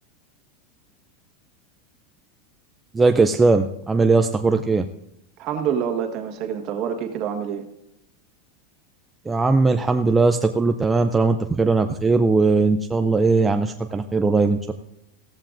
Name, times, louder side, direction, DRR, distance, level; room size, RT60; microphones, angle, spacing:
voice 1, 2.9-4.9 9.3-14.7, right 3 dB, 10° right, 6 dB, 0.4 m, -19 dB
voice 2, 5.4-7.6, right 8 dB, 35° right, 5 dB, 1.5 m, -26 dB
16.5 x 14.5 x 2.6 m, 0.84 s
supercardioid pair, 170°, 0 cm